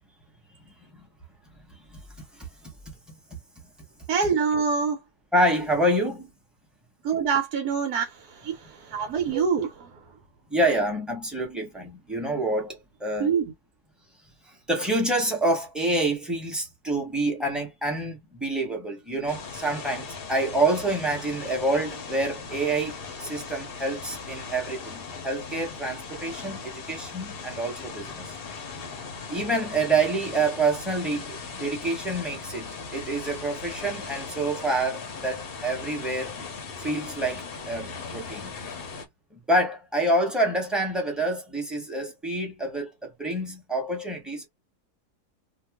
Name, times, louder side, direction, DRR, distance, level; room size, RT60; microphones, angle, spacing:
voice 1, 1.7-2.0 2.3-2.5 5.3-6.3 10.5-13.3 14.4-28.3 29.3-36.3 36.8-38.5 39.3-44.5, right 2 dB, ahead, 0.9 m, -27 dB
voice 2, 4.1-5.0 7.0-10.1 13.2-13.5, right 6 dB, 75° right, 1.3 m, -26 dB
sound 1, 19.3-39.1, left 5 dB, 50° left, 0.8 m, -38 dB
2.9 x 2.3 x 3.5 m
omnidirectional pair, 1.7 m